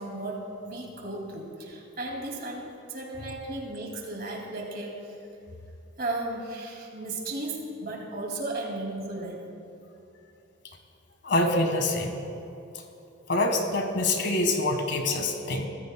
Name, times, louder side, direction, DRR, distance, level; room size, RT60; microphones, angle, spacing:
voice 1, 0.0-5.2 6.0-9.4, right 2 dB, 45° right, 0 dB, 2.4 m, -35 dB
voice 2, 11.2-12.2 13.3-15.7, left 2 dB, 55° left, 4 dB, 1.5 m, -25 dB
23.0 x 15.0 x 2.2 m, 2.8 s
head